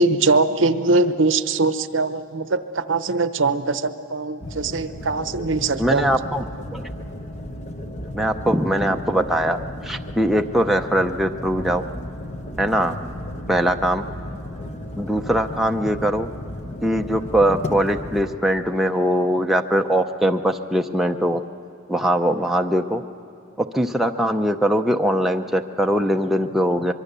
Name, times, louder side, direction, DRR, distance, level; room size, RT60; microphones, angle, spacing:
voice 1, 0.0-6.1, right 3 dB, 65° right, 11 dB, 0.8 m, -21 dB
sound 1, 4.4-18.4, left 1 dB, 35° left, 1.0 m, -34 dB
voice 2, 5.8-6.5 6.7-6.8 8.1-9.6 9.8-11.9 12.6-13.0 13.5-14.1 15.0-16.3 16.8-21.4 21.9-23.0 23.6-26.9, equal, ahead, 3 dB, 0.6 m, -21 dB
24.5 x 23.0 x 6.8 m, 2.7 s
head